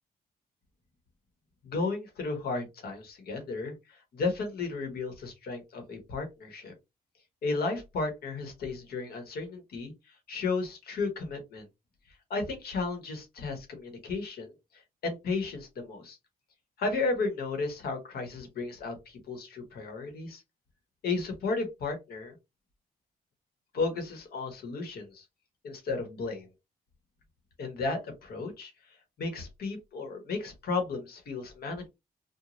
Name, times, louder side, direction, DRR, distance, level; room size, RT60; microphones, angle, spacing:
voice 1, 1.6-6.7 7.4-11.6 12.3-16.2 16.8-20.4 21.0-22.4 23.7-25.2 25.6-26.5 27.6-28.7 29.2-31.9, left 3 dB, 80° left, 5 dB, 1.1 m, -34 dB
3.0 x 2.2 x 2.5 m, 0.23 s
cardioid pair, 120°, 16 cm